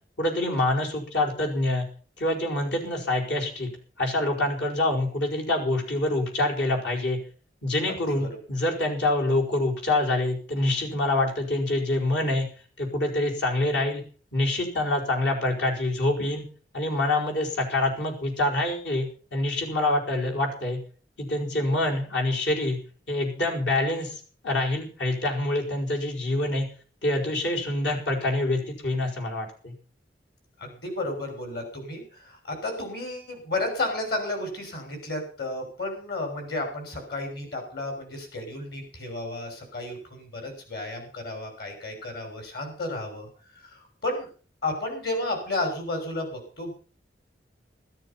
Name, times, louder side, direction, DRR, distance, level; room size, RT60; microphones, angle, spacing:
voice 1, 0.2-1.9 2.2-3.7 4.0-7.2 7.6-12.5 12.8-14.0 14.3-16.4 16.7-20.8 21.2-22.8 23.1-24.1 24.4-26.7 27.0-29.7, left 2 dB, 80° left, 0 dB, 4.8 m, -26 dB
voice 2, 8.1-8.4 30.6-43.3 43.6-44.3 44.6-46.7, left 2 dB, 65° left, 4 dB, 6.8 m, -32 dB
13.5 x 13.5 x 5.8 m, 0.40 s
head